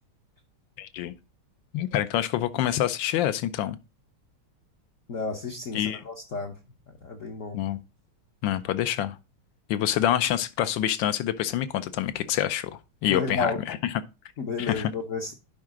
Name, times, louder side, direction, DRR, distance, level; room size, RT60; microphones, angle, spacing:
voice 1, 0.8-1.1 1.7-3.8 5.7-6.0 7.5-7.8 8.4-9.2 9.7-12.7 13.0-13.8 14.6-14.9, left 11 dB, 75° left, 1.2 m, -26 dB
voice 2, 5.1-6.6 6.9-7.6 13.1-13.6 14.4-15.3, left 4 dB, 55° left, 0.9 m, -32 dB
11.0 x 4.8 x 3.6 m
omnidirectional pair, 2.3 m